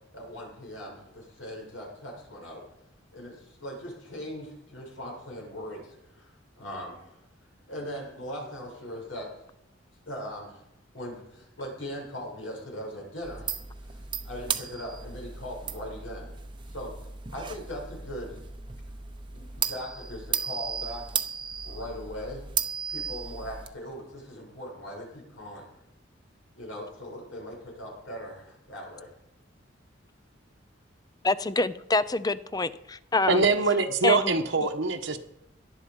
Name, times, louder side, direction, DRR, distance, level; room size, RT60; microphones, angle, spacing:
voice 1, 0.1-2.6 3.1-7.2 7.7-9.3 10.1-10.6 10.9-13.5 13.8-16.4 16.7-18.4 19.3-21.0 21.6-22.4 22.9-25.7 26.5-29.1, equal, 80° left, -2 dB, 7.3 m, -40 dB
sound 1, 13.2-23.7, right 6 dB, 25° right, 0.8 m, -35 dB
voice 2, 31.2-33.4 34.0-34.4, left 3 dB, 20° left, 15 dB, 0.6 m, -26 dB
voice 3, 33.3-35.2, right 4 dB, 75° right, 2 dB, 1.2 m, -23 dB
18.5 x 11.5 x 5.3 m, 0.84 s
head